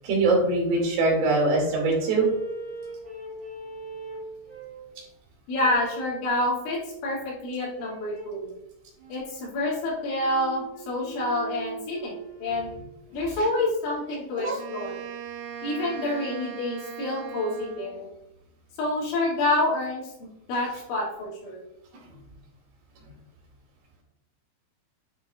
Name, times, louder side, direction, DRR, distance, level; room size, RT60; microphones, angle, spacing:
voice 1, 0.0-2.3 14.4-14.6, right 3 dB, 60° right, -2 dB, 4.0 m, -22 dB
sound 1, 0.7-4.9 5.5-6.1 7.7-8.4 9.0-12.9, right 2 dB, 20° right, 1.6 m, -40 dB
voice 2, 5.5-8.5 9.1-12.1 12.4-12.7 13.1-15.0 15.6-18.1 18.8-21.6, left 1 dB, 80° left, -5 dB, 5.0 m, -28 dB
Wind instrument woodwind instrument, 14.5-18.1, right 8 dB, 85° right, 3.3 m, -39 dB
10.0 x 6.3 x 2.5 m, 0.86 s
omnidirectional pair, 5.4 m